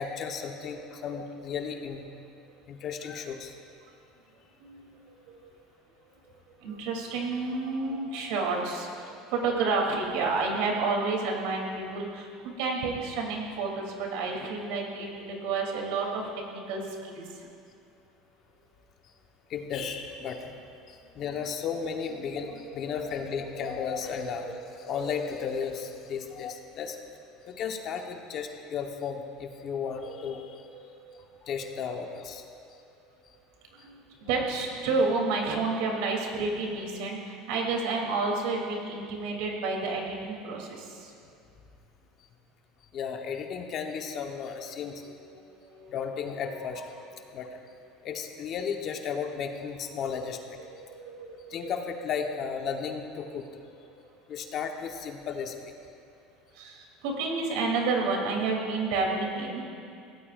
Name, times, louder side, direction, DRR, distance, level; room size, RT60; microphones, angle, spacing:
voice 1, 0.0-2.0 2.7-3.5 19.5-20.5 20.9-27.0 27.4-30.6 31.4-32.4 42.9-45.0 45.9-46.9 47.3-47.6 48.0-50.6 51.3-53.5 54.3-55.6, left 6 dB, 40° left, 4 dB, 1.2 m, -34 dB
voice 2, 6.6-17.2 22.1-23.0 23.6-25.0 30.0-31.2 33.8-41.1 45.0-45.1 45.6-45.9 46.5-46.6 50.6-52.1 53.3-53.4 56.5-59.6, right 3 dB, 75° right, 0 dB, 3.2 m, -31 dB
22.0 x 17.0 x 2.6 m, 2.5 s
cardioid pair, 145°, 0 cm